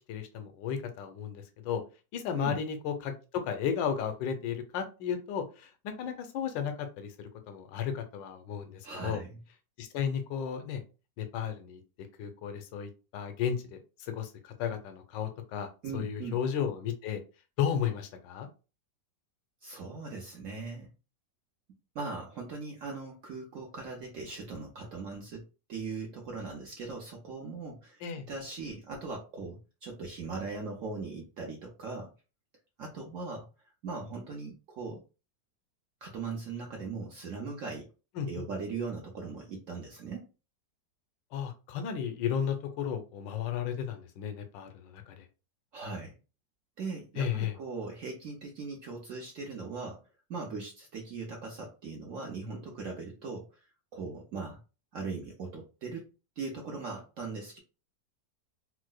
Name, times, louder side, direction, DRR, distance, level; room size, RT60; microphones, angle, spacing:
voice 1, 0.1-1.8 2.1-3.1 3.4-9.2 9.8-10.8 11.2-11.8 12.2-17.2 17.6-18.5 28.0-28.3 38.2-38.3 41.3-45.3 47.2-47.5, left 8 dB, 80° left, 7 dB, 1.3 m, -34 dB
voice 2, 8.8-9.4 15.8-16.4 19.6-20.9 21.9-28.0 28.3-32.1 32.8-33.5 33.8-35.0 36.0-37.9 38.3-40.3 45.7-46.2 46.8-54.6 54.9-57.6, right 4 dB, 70° right, 0 dB, 0.7 m, -39 dB
4.6 x 2.0 x 2.2 m, 0.32 s
omnidirectional pair, 2.0 m